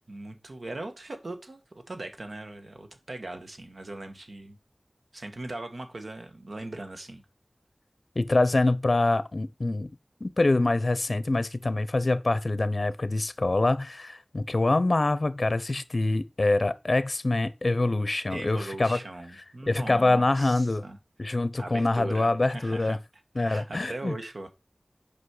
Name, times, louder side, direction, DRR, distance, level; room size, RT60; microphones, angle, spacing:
voice 1, 0.1-4.6 5.1-7.2 18.3-21.0 21.6-23.0 23.4-24.5, right 2 dB, 85° right, 1.5 m, -39 dB
voice 2, 8.2-9.9 10.2-19.0 19.7-20.8 21.2-23.0 23.4-24.1, left 2 dB, 65° left, 0.7 m, -25 dB
8.4 x 5.3 x 4.8 m
wide cardioid pair, 50°, 0 cm